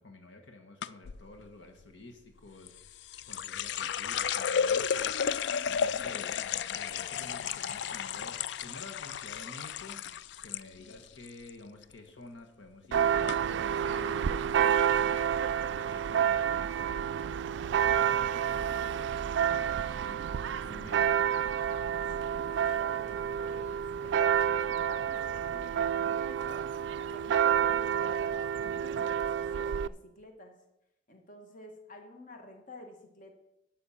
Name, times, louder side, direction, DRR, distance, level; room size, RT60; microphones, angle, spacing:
voice 1, 0.0-6.4 6.7-10.0 10.4-21.6, left 2 dB, 85° left, 4 dB, 1.4 m, -51 dB
sound 1, 0.8-1.2 2.7-10.6 10.9-11.5 11.8-12.2 12.8-12.9 13.3-13.4, left 7 dB, 65° left, 0.3 m, -33 dB
Church bell, 12.9-29.9, right 8 dB, 75° right, 0.3 m, -29 dB
voice 2, 22.3-26.6 27.1-30.6 31.1-33.3, left 1 dB, 45° left, 4 dB, 1.4 m, -50 dB
12.0 x 5.6 x 5.7 m, 0.87 s
head